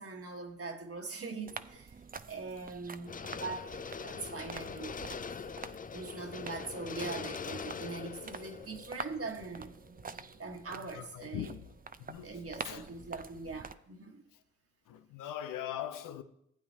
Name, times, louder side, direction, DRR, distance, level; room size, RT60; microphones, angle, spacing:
voice 1, 0.0-1.9 2.3-5.0 5.9-9.7 10.4-11.5 12.2-14.2, right 4 dB, 45° right, 1.4 m, -42 dB
sound 1, 1.5-13.7, right 5 dB, 30° right, 0.5 m, -47 dB
sound 2, 3.1-10.2 10.5-10.6, left 6 dB, 25° left, 0.4 m, -43 dB
voice 2, 10.7-11.7 12.1-12.4 12.6-12.9 14.3-14.4 14.9-16.2, left 11 dB, 90° left, 0.6 m, -41 dB
15.0 x 8.4 x 2.8 m
supercardioid pair, 45°, 31 cm